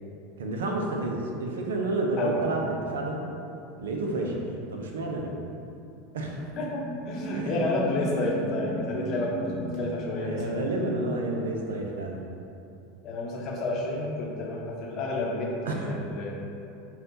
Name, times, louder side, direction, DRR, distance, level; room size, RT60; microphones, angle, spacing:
voice 1, 0.4-3.2 3.8-4.4 4.7-5.3 6.1-6.4 7.3-7.6 10.2-12.2 15.7-15.9, right 2 dB, 80° right, 0 dB, 0.5 m, -30 dB
sound 1, 6.3-11.5, equal, 55° right, 1.1 m, -36 dB
voice 2, 6.6-10.6 11.8-11.9 13.0-16.3, left 2 dB, 45° left, -2 dB, 0.7 m, -30 dB
5.2 x 2.3 x 2.7 m, 2.7 s
hypercardioid pair, 95°, 0 cm